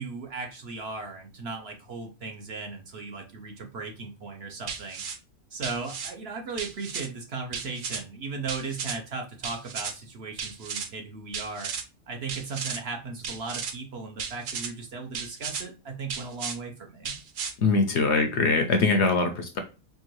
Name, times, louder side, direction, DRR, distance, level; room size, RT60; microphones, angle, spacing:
voice 1, 0.0-5.0 5.5-11.7 12.1-17.2, right 4 dB, 55° right, 3 dB, 0.8 m, -37 dB
sound 1, 4.7-5.2 5.6-6.1 6.6-7.1 7.5-8.0 8.5-9.0 9.4-9.9 10.4-10.9 11.3-11.8 12.3-12.8 13.2-13.7 14.2-14.7 15.1-15.6 16.1-16.6 17.0-17.5, right 6 dB, 80° right, 0.4 m, -34 dB
voice 2, 17.6-19.6, left 3 dB, 65° left, 6 dB, 0.7 m, -22 dB
4.5 x 2.5 x 3.0 m, 0.32 s
omnidirectional pair, 1.5 m